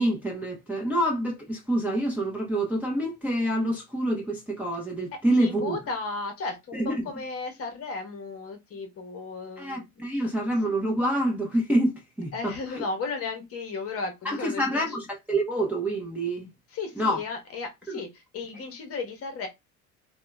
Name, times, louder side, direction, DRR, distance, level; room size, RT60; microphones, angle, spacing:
voice 1, 0.0-5.8 6.7-7.0 9.6-12.5 14.3-16.5 17.0-17.2 17.9-18.0, right 1 dB, 5° right, 0.6 m, -27 dB
voice 2, 5.4-10.3 12.3-15.0 16.7-19.5, left 4 dB, 35° left, 0.9 m, -35 dB
2.8 x 2.3 x 2.2 m
hypercardioid pair, 70°, 42 cm